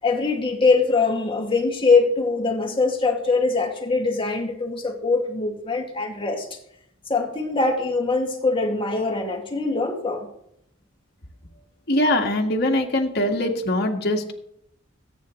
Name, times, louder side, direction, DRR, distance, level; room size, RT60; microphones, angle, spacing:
voice 1, 0.0-6.6 7.1-10.3, left 3 dB, 25° left, 1 dB, 2.3 m, -22 dB
voice 2, 11.9-14.3, left 1 dB, 55° left, 1 dB, 1.9 m, -22 dB
22.0 x 9.4 x 3.2 m, 0.76 s
head